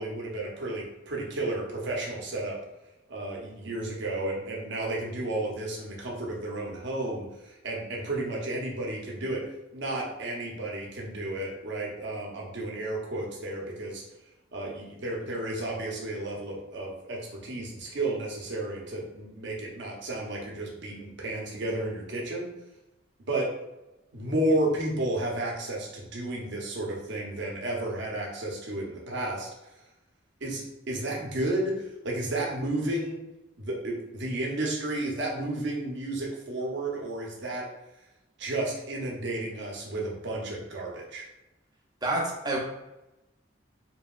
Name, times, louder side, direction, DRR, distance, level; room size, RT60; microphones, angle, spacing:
voice 1, 0.0-2.6 3.1-9.4 9.7-14.0 14.5-22.5 23.3-23.5 24.1-29.5 30.4-33.2 33.6-37.6 38.4-41.2, right 1 dB, 65° right, -2 dB, 0.7 m, -32 dB
voice 2, 42.0-42.6, right 1 dB, 20° right, -1 dB, 0.5 m, -28 dB
2.9 x 2.7 x 2.3 m, 0.95 s
head